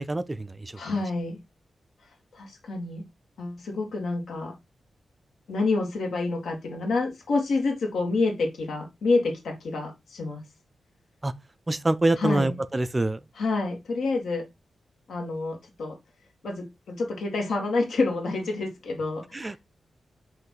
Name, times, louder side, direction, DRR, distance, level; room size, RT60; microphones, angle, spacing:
voice 1, 0.0-0.7 11.2-11.3 11.7-13.2 19.3-19.6, right 2 dB, 15° right, 0.3 m, -25 dB
voice 2, 0.7-1.4 2.3-3.0 3.4-4.5 5.5-10.4 12.2-12.5 13.4-14.5 15.1-16.0 16.4-19.6, left 3 dB, 80° left, 2.1 m, -28 dB
5.6 x 3.1 x 5.6 m
wide cardioid pair, 175°, 0 cm